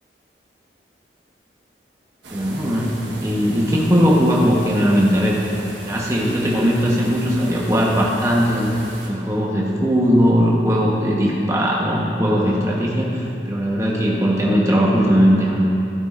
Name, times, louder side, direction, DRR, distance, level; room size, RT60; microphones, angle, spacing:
sound 1, 2.2-9.1, right 1 dB, 90° right, 1.4 m, -36 dB
voice 1, 2.3-5.4 5.9-15.6, equal, 15° right, -3 dB, 1.1 m, -19 dB
13.0 x 8.4 x 2.6 m, 2.7 s
head